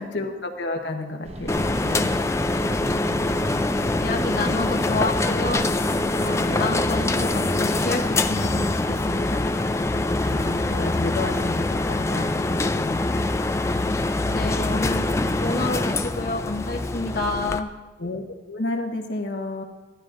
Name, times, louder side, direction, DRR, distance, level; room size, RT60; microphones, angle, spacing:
voice 1, 0.0-1.6 6.4-6.9 10.2-13.0 18.0-19.6, left 2 dB, 90° left, 3 dB, 1.1 m, -31 dB
sound 1, 1.2-10.7, right 1 dB, 35° right, 0.8 m, -38 dB
sound 2, 1.5-17.6, left 2 dB, 15° left, 0.3 m, -24 dB
voice 2, 1.8-2.2 4.0-5.7 6.2-9.5 14.3-15.1 15.4-17.7, left 2 dB, 55° left, 0 dB, 0.9 m, -29 dB
15.0 x 12.5 x 2.5 m, 1.2 s
head